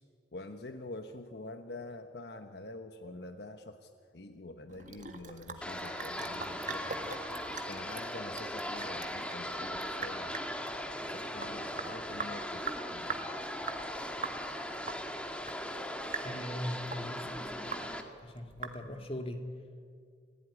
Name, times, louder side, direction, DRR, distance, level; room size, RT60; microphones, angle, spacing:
voice 1, 0.3-6.9 7.5-10.4 11.1-13.1, left 2 dB, 60° left, 7 dB, 1.2 m, -46 dB
Sink (filling or washing) / Drip, 4.7-19.2, right 5 dB, 45° right, 1.9 m, -44 dB
sound 1, 5.6-18.0, equal, 5° left, 1.7 m, -39 dB
voice 2, 16.2-17.3 18.2-19.4, equal, 30° left, 5 dB, 2.4 m, -39 dB
29.0 x 17.0 x 9.9 m, 2.2 s
head